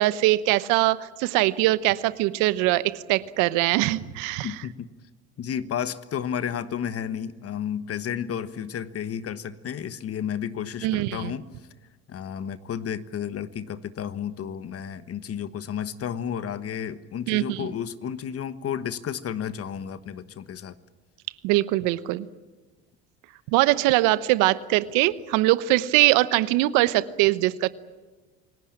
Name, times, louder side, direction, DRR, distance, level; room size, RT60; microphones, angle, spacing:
voice 1, 0.0-4.5 10.8-11.3 17.3-17.7 21.4-22.3 23.5-27.7, right 17 dB, 75° right, 15 dB, 1.0 m, -22 dB
voice 2, 4.4-4.9 5.4-11.5 12.1-20.7, left 8 dB, 45° left, 13 dB, 1.3 m, -32 dB
28.0 x 18.0 x 8.8 m, 1.3 s
supercardioid pair, 75°, 32 cm